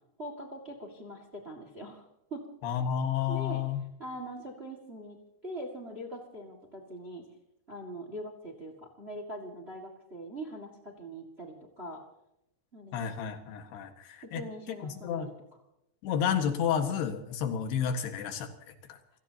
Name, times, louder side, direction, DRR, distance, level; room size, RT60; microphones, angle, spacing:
voice 1, 0.2-2.4 3.3-3.6 4.0-5.2 5.4-7.3 7.7-12.1 12.7-13.1 14.2-15.3, right 1 dB, 30° right, 2 dB, 1.2 m, -42 dB
voice 2, 2.6-3.8 12.9-14.4 14.8-15.3 16.0-18.5 18.9-19.0, left 8 dB, 80° left, 6 dB, 3.7 m, -31 dB
28.0 x 17.5 x 2.9 m, 0.83 s
omnidirectional pair, 4.6 m